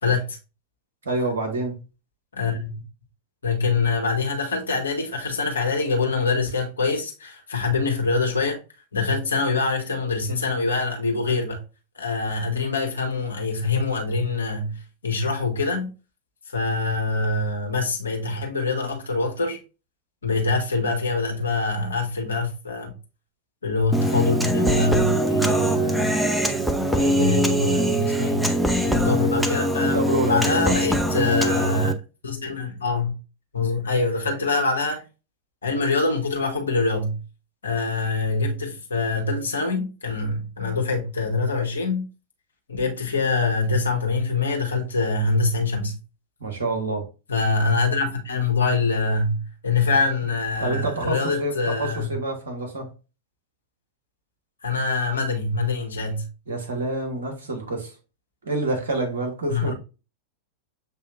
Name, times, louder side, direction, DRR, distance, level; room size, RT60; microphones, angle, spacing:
voice 1, 0.0-0.4 2.3-2.8 3.4-8.6 8.9-11.6 12.0-15.9 16.5-19.6 20.2-22.9 23.6-26.1 26.8-28.5 28.8-32.0 32.2-33.1 33.5-35.0 35.6-37.2 37.6-42.1 42.7-46.0 47.3-52.1 54.6-56.2 59.5-59.7, left 3 dB, 70° left, 1.1 m, -24 dB
voice 2, 1.0-1.8 29.8-31.1 46.4-47.1 50.6-52.9 56.5-57.9 58.4-59.7, right 2 dB, 65° right, 1.1 m, -27 dB
Human voice, 23.9-31.9, equal, ahead, 0.5 m, -22 dB
6.9 x 2.7 x 2.5 m
figure-of-eight pair, 90°, 0 cm